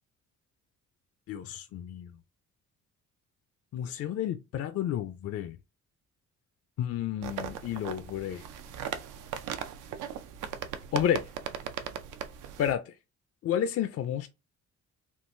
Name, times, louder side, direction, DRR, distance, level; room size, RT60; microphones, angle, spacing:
voice 1, 1.3-2.1 3.7-5.6 6.8-8.4 10.9-11.2 12.6-12.9 13.4-14.3, left 10 dB, 55° left, 0.4 m, -31 dB
sound 1, 7.2-12.7, right 8 dB, 85° right, 0.5 m, -38 dB
3.7 x 2.3 x 2.5 m
cardioid pair, 90°, 30 cm